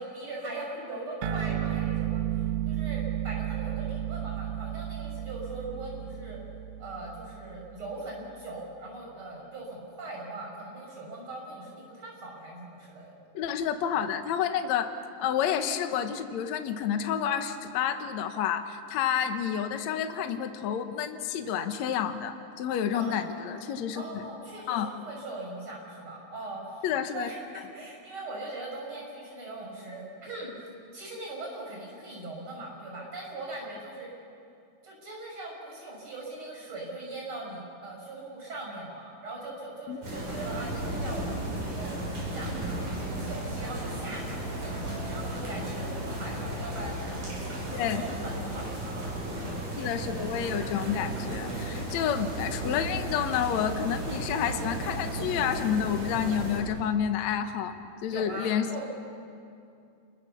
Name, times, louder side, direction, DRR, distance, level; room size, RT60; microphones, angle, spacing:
voice 1, 0.0-2.2 2.7-6.4 6.8-13.1 22.9-23.7 23.9-30.5 30.9-34.1 34.8-41.2 41.7-47.0 47.7-49.6 58.0-58.9, right 2 dB, 35° right, -2 dB, 6.8 m, -40 dB
sound 1, 1.2-8.0, right 11 dB, 80° right, 1.3 m, -33 dB
voice 2, 13.3-14.9 15.2-24.0 24.7-24.9 26.8-27.3 39.9-40.0 47.7-48.0 49.8-57.7 58.0-58.7, left 8 dB, 65° left, 7 dB, 2.1 m, -29 dB
sound 2, 40.0-56.6, right 1 dB, 60° right, 8.6 m, -34 dB
27.5 x 23.0 x 7.0 m, 2.5 s
omnidirectional pair, 4.1 m